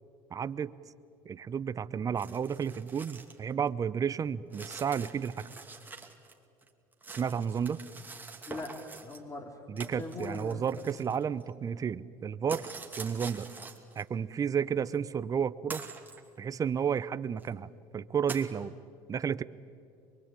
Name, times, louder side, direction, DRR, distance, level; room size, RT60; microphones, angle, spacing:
voice 1, 0.3-0.7 1.2-5.5 7.2-7.8 9.7-12.7 13.0-13.5 14.0-15.8 16.4-17.7 17.9-18.8 19.1-19.4, right 7 dB, 30° right, 15 dB, 0.8 m, -32 dB
sound 1, 2.2-3.4 3.7-3.8 4.5-6.3 6.6-9.2 9.8-11.5 12.5-14.0 14.9-15.0 15.7-16.2 17.0-17.1 17.4-17.5 18.3-18.5, right 4 dB, 15° right, 2.7 m, -45 dB
voice 2, 8.5-10.8, left 2 dB, 30° left, 3 dB, 3.6 m, -42 dB
23.5 x 23.0 x 9.0 m, 2.4 s
supercardioid pair, 90°, 11 cm